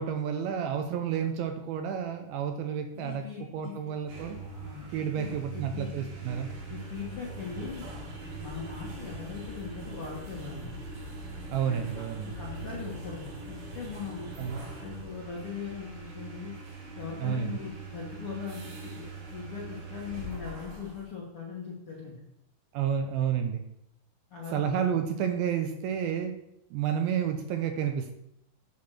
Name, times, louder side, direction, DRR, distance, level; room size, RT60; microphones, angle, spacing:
voice 1, 0.0-3.3 3.5-4.4 4.9-6.5 11.5-12.4 14.4-14.6 17.2-17.6 22.7-23.6 24.5-26.3 26.7-28.1, right 8 dB, 80° right, 6 dB, 2.3 m, -30 dB
voice 2, 2.9-3.7 4.6-4.8 5.1-6.0 6.7-7.8 8.4-10.7 11.7-14.3 14.8-16.5 16.9-22.2 24.3-24.7, left 6 dB, 60° left, -4 dB, 1.4 m, -40 dB
sound 1, 3.9-21.1, right 2 dB, 65° right, 3.5 m, -42 dB
8.4 x 4.3 x 6.3 m, 0.80 s
omnidirectional pair, 4.6 m